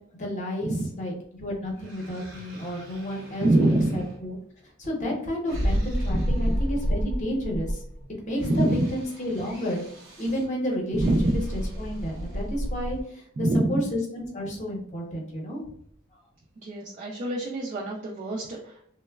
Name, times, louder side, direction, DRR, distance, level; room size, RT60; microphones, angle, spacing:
voice 1, 0.2-4.3 4.8-7.8 8.2-9.8 10.2-11.2 11.8-13.8 14.1-15.6, equal, 35° left, -1 dB, 0.7 m, -31 dB
sound 1, 1.8-4.2 5.5-8.0 8.3-10.4 10.9-13.0, equal, 65° right, 0.9 m, -31 dB
voice 2, 3.4-4.1 6.1-6.5 8.5-8.9 10.9-11.4 13.4-13.8 16.6-19.0, right 1 dB, 35° right, -2 dB, 0.3 m, -25 dB
3.1 x 2.0 x 2.2 m, 0.64 s
head